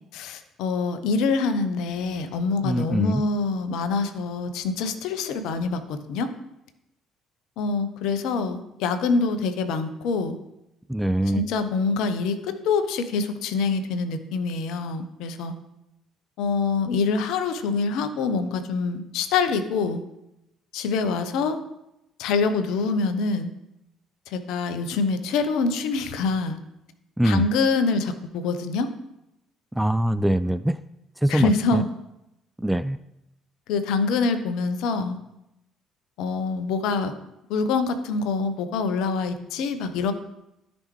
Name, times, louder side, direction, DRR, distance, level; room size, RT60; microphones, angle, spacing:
voice 1, 0.1-6.3 7.6-10.4 11.3-15.5 16.4-20.0 20.7-21.6 22.2-23.5 24.3-26.6 27.2-28.9 31.3-31.9 33.7-35.2 36.2-37.1 37.5-40.1, left 4 dB, 60° left, 10 dB, 0.8 m, -25 dB
voice 2, 2.6-3.2 10.9-11.4 27.2-27.5 29.7-30.8 31.2-31.8 32.6-33.0, right 1 dB, 5° right, 14 dB, 0.3 m, -23 dB
13.0 x 5.3 x 3.1 m, 0.88 s
figure-of-eight pair, 50°, 0 cm